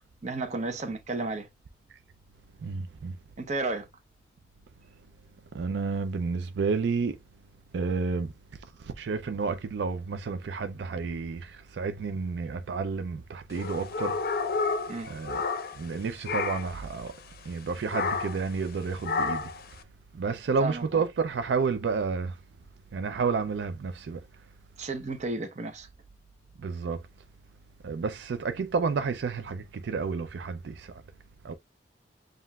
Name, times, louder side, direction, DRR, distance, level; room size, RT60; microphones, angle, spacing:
voice 1, 0.0-1.5 3.4-3.9 14.9-15.1 20.6-21.0 24.8-25.9, right 2 dB, 40° right, 0.8 m, -33 dB
voice 2, 2.6-3.2 5.5-7.2 7.7-8.3 8.6-14.2 15.1-15.4 15.7-17.2 17.4-19.5 20.1-22.4 22.9-24.2 26.6-27.0 27.8-31.0 31.4-31.5, right 5 dB, 80° right, 0.4 m, -30 dB
sound 1, 13.5-16.0 16.2-16.8 17.9-18.5 19.0-19.6, left 4 dB, 55° left, 0.5 m, -30 dB
7.4 x 2.5 x 2.2 m
head